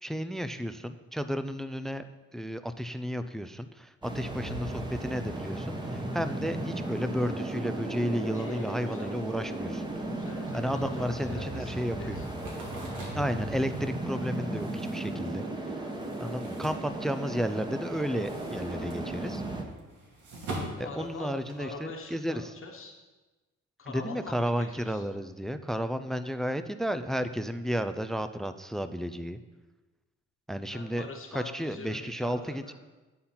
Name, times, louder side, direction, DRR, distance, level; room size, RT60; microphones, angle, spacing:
voice 1, 0.0-2.1 2.3-9.9 10.5-12.3 13.1-15.4 16.2-19.4 20.8-22.5 23.9-29.4 30.5-32.7, equal, ahead, 11 dB, 0.4 m, -32 dB
sound 1, 4.0-19.6, right 1 dB, 15° right, 1.2 m, -36 dB
voice 2, 8.3-9.1 10.1-12.3 20.8-23.0 23.8-25.0 30.7-32.7, left 4 dB, 45° left, 1 dB, 1.2 m, -44 dB
sound 2, 12.1-17.6 17.9-21.8, right 1 dB, 85° right, 2.3 m, -43 dB
10.5 x 4.2 x 5.7 m, 1.2 s
cardioid pair, 90°, 30 cm